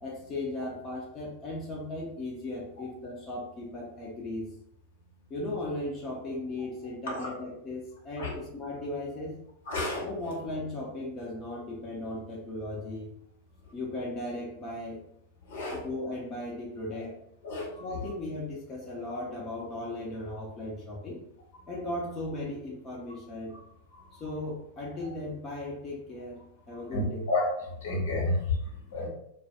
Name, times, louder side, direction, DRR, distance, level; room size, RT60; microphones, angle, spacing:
voice 1, 0.0-4.5 5.3-9.4 10.0-13.1 13.7-15.0 15.7-17.2 17.8-21.2 21.7-23.6 24.1-26.4 26.7-27.2 28.8-28.9, left 2 dB, 25° left, -4 dB, 0.6 m, -37 dB
voice 2, 9.7-10.0 15.5-15.8 17.4-17.7 26.9-27.5 27.8-28.4 28.9-29.1, left 1 dB, 60° left, -2 dB, 0.9 m, -30 dB
2.3 x 2.2 x 2.7 m, 0.76 s
figure-of-eight pair, 90°, 0 cm